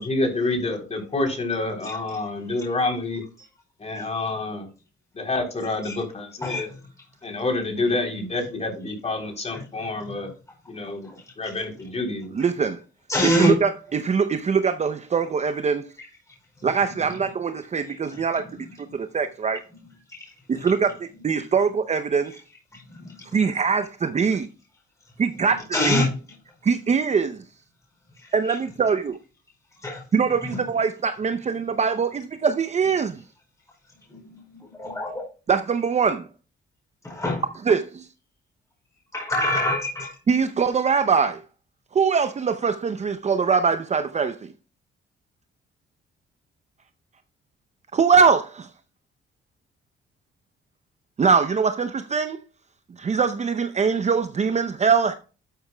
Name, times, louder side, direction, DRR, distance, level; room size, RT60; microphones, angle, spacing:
voice 1, 0.0-3.2 3.8-4.7 5.1-6.7 7.2-10.3 10.7-11.1 11.4-12.3, left 2 dB, 35° left, 3.5 m, -28 dB
voice 2, 12.3-12.8 13.2-15.8 16.6-18.5 18.9-19.6 20.5-20.9 21.2-22.3 23.3-24.5 25.2-26.0 26.6-27.4 28.3-29.2 30.1-33.2 35.5-36.3 37.7-38.0 40.3-41.4 41.9-44.5 47.9-48.7 51.2-52.4 53.0-55.1, right 5 dB, 35° right, 0.6 m, -22 dB
voice 3, 13.1-13.5 16.0-16.1 18.1-18.2 20.1-20.3 20.6-20.7 22.7-23.4 25.7-26.1 28.5-28.6 29.8-30.0 30.5-30.6 34.1-35.2 37.0-37.4 39.1-40.2, left 1 dB, 15° left, 4.8 m, -26 dB
12.5 x 7.9 x 2.3 m
cardioid pair, 90°, 20 cm